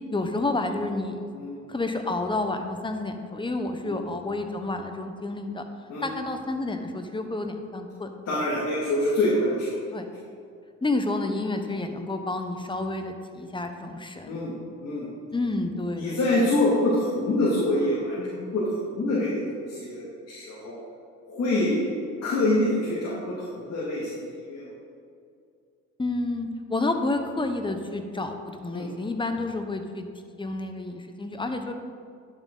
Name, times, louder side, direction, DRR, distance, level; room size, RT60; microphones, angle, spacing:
voice 1, 0.1-1.2 1.7-5.6 6.0-8.1 9.9-10.1 10.8-14.4 15.3-16.2 26.0-30.1 30.4-31.7, left 2 dB, 15° left, 6 dB, 1.0 m, -30 dB
voice 2, 8.3-9.9 14.3-14.5 14.8-15.1 15.9-20.8 21.3-21.8 22.2-24.7 28.7-28.9, left 1 dB, 55° left, -8 dB, 2.5 m, -26 dB
10.5 x 7.4 x 4.0 m, 2.4 s
cardioid pair, 90°, 30 cm